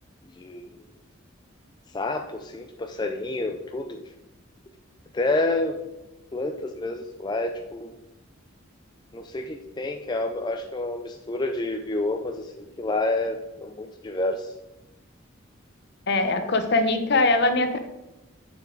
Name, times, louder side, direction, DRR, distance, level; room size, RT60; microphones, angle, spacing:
voice 1, 0.3-0.8 1.9-4.0 5.1-5.8 6.3-7.9 9.1-14.5, left 2 dB, 20° left, 4 dB, 0.4 m, -29 dB
voice 2, 16.1-17.8, left 2 dB, 55° left, 8 dB, 0.8 m, -22 dB
7.2 x 6.3 x 3.8 m, 0.96 s
head